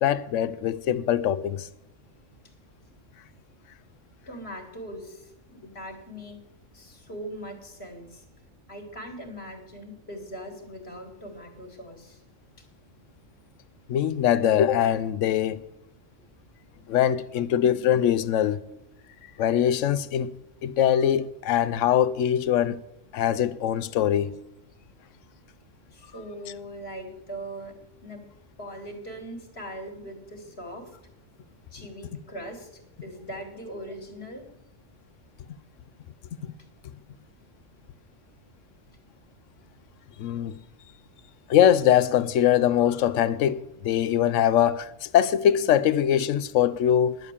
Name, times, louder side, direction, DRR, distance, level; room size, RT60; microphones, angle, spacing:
voice 1, 0.0-1.7 13.9-15.6 16.9-18.6 19.4-20.3 20.6-22.8 23.1-24.3 40.2-40.6 41.5-47.2, left 10 dB, 80° left, 1.0 m, -22 dB
voice 2, 4.3-6.4 6.7-8.2 8.7-12.2 25.9-27.7 28.0-28.2 28.6-30.8 31.7-34.4, equal, 50° left, 2.1 m, -40 dB
11.0 x 8.3 x 7.2 m
omnidirectional pair, 1.3 m